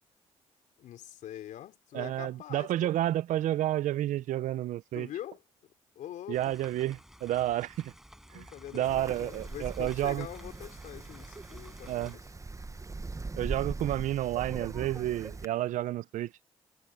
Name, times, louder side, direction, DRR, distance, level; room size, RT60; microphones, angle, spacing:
voice 1, 0.8-2.9 4.9-5.4 5.9-6.6 8.3-12.3, left 12 dB, 75° left, 4.3 m, -44 dB
voice 2, 1.9-5.1 6.3-7.9 8.3-8.4 8.7-10.3 11.9-12.2 13.4-16.3, right 13 dB, 75° right, 0.7 m, -30 dB
sound 1, 6.3-12.2, equal, 5° right, 7.5 m, -54 dB
Wind, 8.8-15.5, right 3 dB, 25° right, 1.2 m, -40 dB
supercardioid pair, 55°, 13 cm